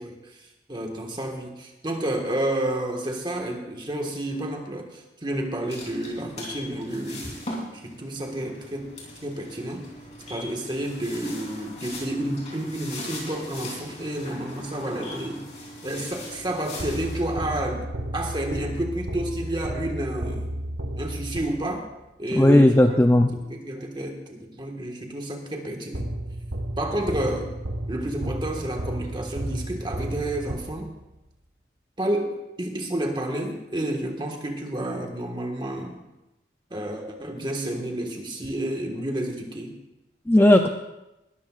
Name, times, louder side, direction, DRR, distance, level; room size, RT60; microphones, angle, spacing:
voice 1, 0.0-8.9 9.2-9.8 10.3-15.4 15.8-17.9 18.1-20.5 21.0-21.9 22.2-23.0 23.5-26.1 26.8-27.5 27.9-30.9 32.0-36.0 36.7-39.7, right 1 dB, 25° right, 3 dB, 1.6 m, -30 dB
sound 1, 5.7-17.6, left 1 dB, 35° left, 3.6 m, -40 dB
sound 2, 16.8-21.9 25.9-31.1, right 1 dB, 80° right, 1.4 m, -33 dB
voice 2, 22.3-23.4 40.3-40.7, left 1 dB, 10° left, 5 dB, 0.4 m, -16 dB
20.0 x 13.5 x 2.5 m, 0.95 s
head